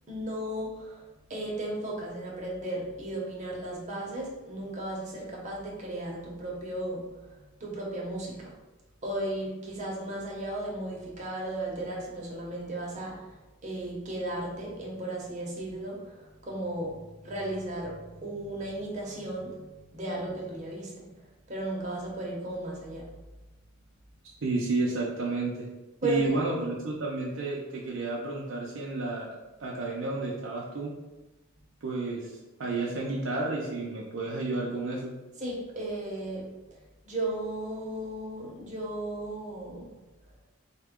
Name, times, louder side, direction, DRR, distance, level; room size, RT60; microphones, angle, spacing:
voice 1, 0.1-1.0 1.3-8.5 9.0-21.1 21.5-23.1 26.0-26.4 35.4-36.5 37.0-39.9, right 1 dB, 35° right, -3 dB, 0.8 m, -35 dB
voice 2, 24.2-25.7 26.0-30.9 31.8-35.1, right 3 dB, 65° right, -3 dB, 0.5 m, -31 dB
3.6 x 2.2 x 3.5 m, 1.1 s
head